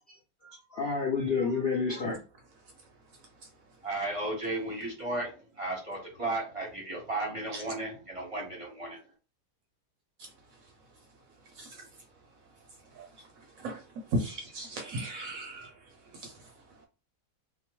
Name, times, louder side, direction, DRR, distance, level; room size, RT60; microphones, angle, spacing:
voice 1, 0.1-2.2, left 5 dB, 60° left, 0.6 m, -30 dB
voice 2, 2.6-3.9 7.5-7.6 10.2-16.9, right 1 dB, 70° right, 0.9 m, -40 dB
voice 3, 3.8-9.0, right 2 dB, 30° right, 0.7 m, -34 dB
2.8 x 2.0 x 2.9 m
omnidirectional pair, 1.7 m